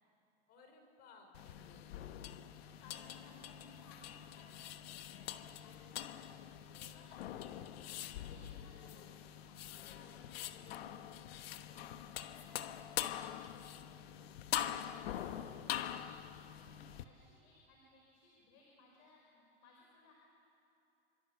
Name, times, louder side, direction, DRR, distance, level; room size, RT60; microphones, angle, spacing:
voice 1, 0.5-2.0 9.9-11.1, left 3 dB, 30° left, 4 dB, 4.3 m, -62 dB
sound 1, 1.3-17.0, left 11 dB, 85° left, 1.2 m, -44 dB
voice 2, 2.8-4.7 5.0-10.0 11.6-12.7 13.0-13.9 14.8-20.1, left 2 dB, 50° left, -1 dB, 5.1 m, -64 dB
27.5 x 25.5 x 7.0 m, 2.9 s
supercardioid pair, 170°, 30 cm